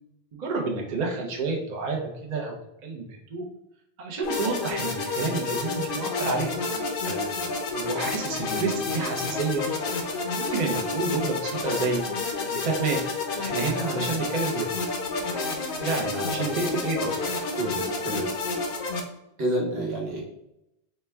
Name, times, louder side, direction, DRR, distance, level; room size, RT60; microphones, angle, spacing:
voice 1, 0.3-2.6 2.8-3.4 4.0-6.5 7.7-9.7 10.3-12.1 12.4-13.0 13.3-14.7 15.8-17.1, right 3 dB, 50° right, 1 dB, 0.7 m, -29 dB
sound 1, 4.2-19.0, left 3 dB, 60° left, 0.7 m, -30 dB
voice 2, 7.0-7.4 17.6-18.3 19.4-20.2, right 1 dB, 80° right, -1 dB, 1.2 m, -29 dB
4.1 x 2.2 x 3.4 m, 0.84 s
omnidirectional pair, 1.1 m